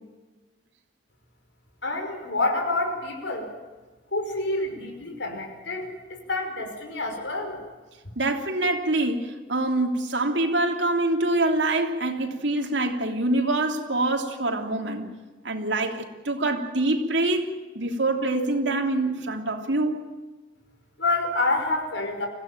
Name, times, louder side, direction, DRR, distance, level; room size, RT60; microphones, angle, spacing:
voice 1, 1.8-3.5 4.1-7.6 21.0-22.3, left 2 dB, 75° left, 4 dB, 5.5 m, -28 dB
voice 2, 8.1-15.1 15.4-20.0, right 2 dB, 70° right, 3 dB, 3.1 m, -25 dB
25.5 x 16.5 x 9.0 m, 1.3 s
head